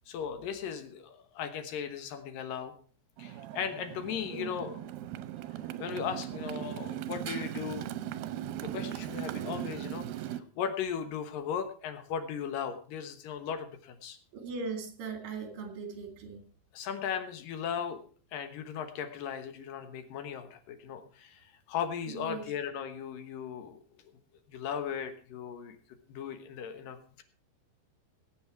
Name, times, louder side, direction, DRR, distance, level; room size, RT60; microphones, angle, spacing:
voice 1, 0.1-2.7 3.2-4.9 5.8-7.9 8.6-14.2 16.7-18.0 18.3-23.8 24.5-25.8 26.1-27.2, left 8 dB, 75° left, 9 dB, 2.8 m, -37 dB
Motorcycle, 3.2-10.4, right 12 dB, 85° right, 2.6 m, -38 dB
voice 2, 4.3-4.6 14.3-16.4 22.1-22.5, right 4 dB, 70° right, 6 dB, 3.9 m, -39 dB
18.5 x 8.0 x 4.6 m, 0.41 s
omnidirectional pair, 4.1 m